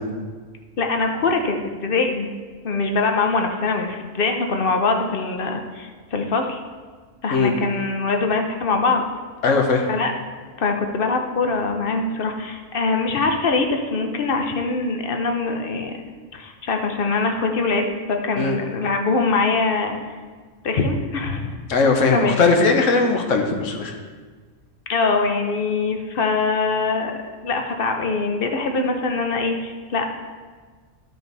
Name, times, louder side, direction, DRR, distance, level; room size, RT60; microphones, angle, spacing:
voice 1, 0.8-1.5 1.8-2.3 2.6-6.6 7.2-9.1 9.9-10.1 10.6-16.0 16.3-20.0 20.6-21.6 22.1-22.4 24.9-30.1, left 3 dB, 50° left, 4 dB, 0.9 m, -23 dB
voice 2, 9.4-9.9 18.4-18.6 21.7-23.9, left 4 dB, 75° left, 3 dB, 1.3 m, -19 dB
12.0 x 5.2 x 4.0 m, 1.5 s
omnidirectional pair, 1.3 m